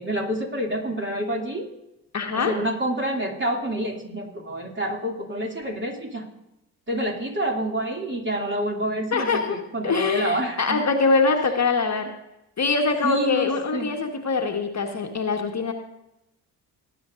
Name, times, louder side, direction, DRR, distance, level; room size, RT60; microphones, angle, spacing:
voice 1, 0.0-1.7 2.3-6.3 6.9-10.8 13.0-13.9, right 1 dB, 25° right, 1 dB, 2.7 m, -28 dB
voice 2, 2.1-2.5 9.1-12.1 12.6-15.7, left 4 dB, 35° left, 4 dB, 1.5 m, -23 dB
19.5 x 10.0 x 2.6 m, 0.88 s
figure-of-eight pair, 45°, 47 cm